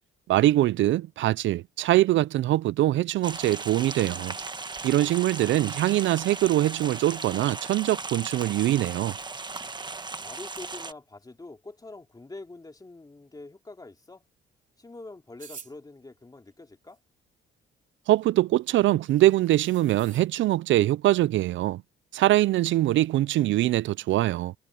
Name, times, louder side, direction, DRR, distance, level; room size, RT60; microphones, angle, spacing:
voice 1, 0.3-4.4 4.8-9.2 18.1-21.8 22.1-24.5, right 15 dB, 70° right, 0.5 m, -23 dB
sound 1, 3.2-10.9, right 3 dB, 20° right, 1.3 m, -37 dB
voice 2, 4.9-5.7 10.2-14.2 14.8-17.0, left 2 dB, 20° left, 3.0 m, -45 dB
sound 2, 15.4-15.7 18.2-18.3 18.7-18.8 19.1-20.3, right 6 dB, 40° right, 3.8 m, -47 dB
cardioid pair, 90°, 20 cm